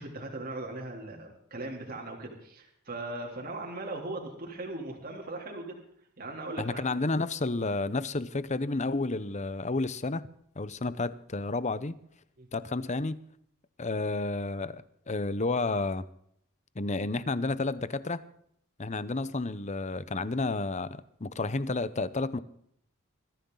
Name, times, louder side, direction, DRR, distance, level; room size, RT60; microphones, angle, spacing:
voice 1, 0.0-5.8 6.2-7.0 12.4-12.5, right 2 dB, 45° right, 3.3 m, -39 dB
voice 2, 6.6-10.2 10.6-12.0 12.5-13.2 13.8-16.0 16.8-18.2 18.8-22.4, left 3 dB, 35° left, 0.8 m, -31 dB
21.5 x 14.5 x 3.9 m
head